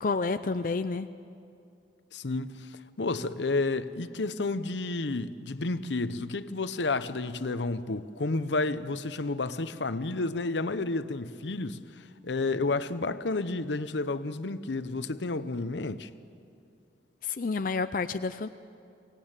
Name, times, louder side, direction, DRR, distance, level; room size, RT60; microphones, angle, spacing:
voice 1, 0.0-1.1 17.2-18.5, left 4 dB, 50° left, 0.5 m, -29 dB
voice 2, 2.1-16.1, left 3 dB, 80° left, 0.8 m, -31 dB
24.5 x 18.5 x 8.9 m
head